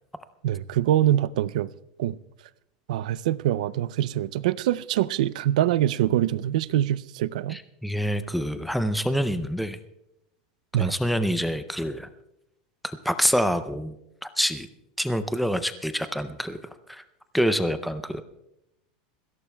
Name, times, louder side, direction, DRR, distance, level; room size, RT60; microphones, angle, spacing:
voice 1, 0.4-1.7 2.0-2.1 2.9-7.6 10.7-10.9, right 12 dB, 80° right, 0.4 m, -24 dB
voice 2, 7.5-9.8 10.8-12.1 12.8-13.9 14.2-14.7 15.0-16.6 16.9-17.0 17.3-18.2, equal, ahead, 0.4 m, -26 dB
21.0 x 16.5 x 2.2 m
supercardioid pair, 170°, 4 cm